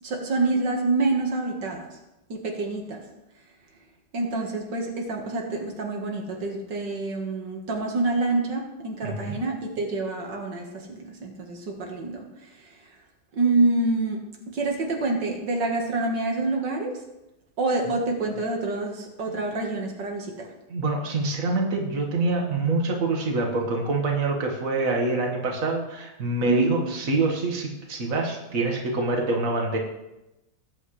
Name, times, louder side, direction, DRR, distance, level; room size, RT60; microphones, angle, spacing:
voice 1, 0.0-1.9 2.3-3.0 4.1-12.8 13.3-17.0 17.6-20.5 26.4-26.7, right 2 dB, 80° right, 1 dB, 2.3 m, -27 dB
voice 2, 9.0-9.3 20.7-29.8, right 2 dB, 50° right, 1 dB, 2.2 m, -26 dB
20.0 x 8.8 x 3.3 m, 0.93 s
omnidirectional pair, 1.9 m